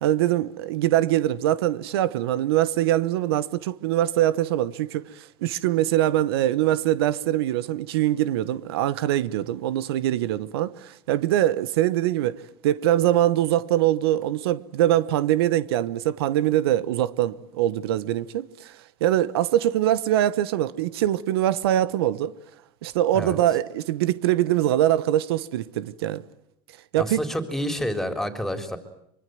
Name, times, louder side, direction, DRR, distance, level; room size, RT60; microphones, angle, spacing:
voice 1, 0.0-18.7 19.0-22.3 22.8-26.2 26.9-27.2, right 13 dB, 90° right, 1.1 m, -23 dB
voice 2, 26.9-28.8, equal, ahead, 4.0 m, -28 dB
24.5 x 24.5 x 9.3 m
supercardioid pair, 110°, 13 cm